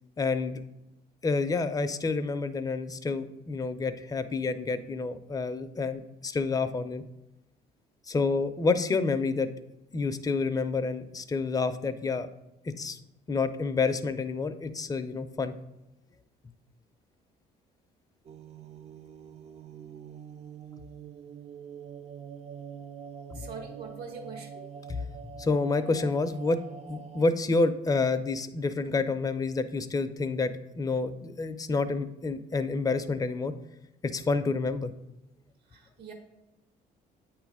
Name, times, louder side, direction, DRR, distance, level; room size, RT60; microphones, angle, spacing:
voice 1, 0.2-0.6 1.2-7.0 8.1-9.5 9.9-12.3 12.6-13.0 13.3-15.5 23.3-23.4 24.9-25.0 25.4-26.6 26.9-33.5 34.0-34.9, left 3 dB, 20° left, 9 dB, 0.5 m, -28 dB
sound 1, 18.3-27.3, right 7 dB, 40° right, 0.4 m, -45 dB
voice 2, 23.3-24.7 35.7-36.1, right 5 dB, 75° right, 4 dB, 1.3 m, -43 dB
8.6 x 3.1 x 4.7 m, 0.90 s
cardioid pair, 110°, 17 cm